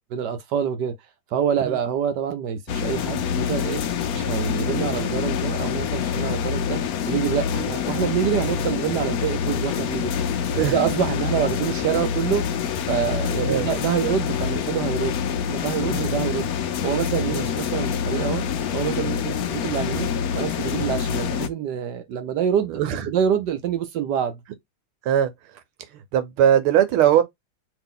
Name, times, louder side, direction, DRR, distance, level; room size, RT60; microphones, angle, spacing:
voice 1, 0.1-0.9 1.3-3.8 4.1-6.8 7.1-10.1 10.7-12.4 12.8-15.2 15.5-16.5 16.8-18.4 18.7-22.8 23.1-24.4, right 8 dB, 65° right, 1.1 m, -26 dB
sound 1, 2.7-21.5, left 7 dB, 85° left, 0.8 m, -26 dB
voice 2, 22.7-23.1 25.0-25.6 25.9-27.2, right 10 dB, 85° right, 1.7 m, -21 dB
3.2 x 2.9 x 3.7 m
omnidirectional pair, 2.3 m